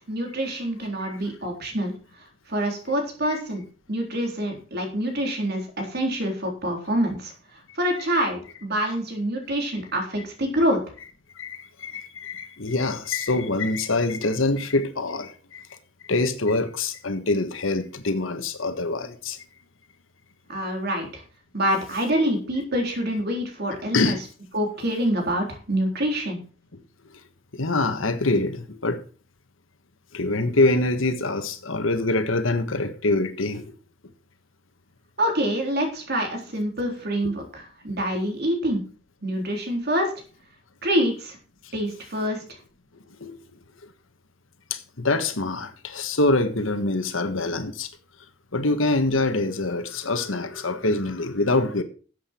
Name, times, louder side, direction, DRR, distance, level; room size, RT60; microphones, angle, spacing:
voice 1, 0.1-1.9 2.5-3.6 3.9-7.3 7.8-10.8 20.5-21.2 21.5-24.2 24.5-26.4 35.2-38.8 39.2-40.1 40.8-41.4 41.7-42.4, equal, 55° right, 3.8 m, -26 dB
voice 2, 11.3-15.7 16.0-19.4 23.9-24.2 26.7-26.8 27.5-29.0 30.1-33.7 43.2-43.4 44.7-47.9 48.5-51.8, left 2 dB, 90° left, 1.5 m, -25 dB
12.5 x 8.1 x 4.5 m
head